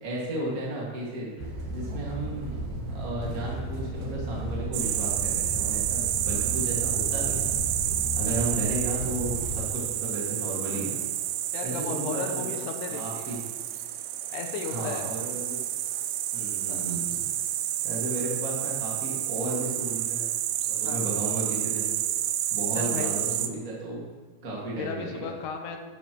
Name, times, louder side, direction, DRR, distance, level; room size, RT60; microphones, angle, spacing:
voice 1, 0.0-1.3 1.7-7.5 8.1-11.0 11.6-12.5 12.9-13.4 14.6-15.6 16.3-17.1 17.8-20.3 20.7-21.9 22.5-24.1 24.4-25.3, right 1 dB, 45° right, -5 dB, 1.1 m, -34 dB
sound 1, 1.4-9.6, right 1 dB, 65° right, 3.1 m, -34 dB
sound 2, 4.7-23.5, right 12 dB, 80° right, 2.7 m, -29 dB
voice 2, 11.5-13.4 14.3-15.1 16.7-17.0 20.8-21.0 22.7-23.1 24.7-25.8, left 6 dB, 75° left, 4 dB, 2.8 m, -35 dB
11.5 x 11.0 x 3.1 m, 1.4 s
omnidirectional pair, 5.0 m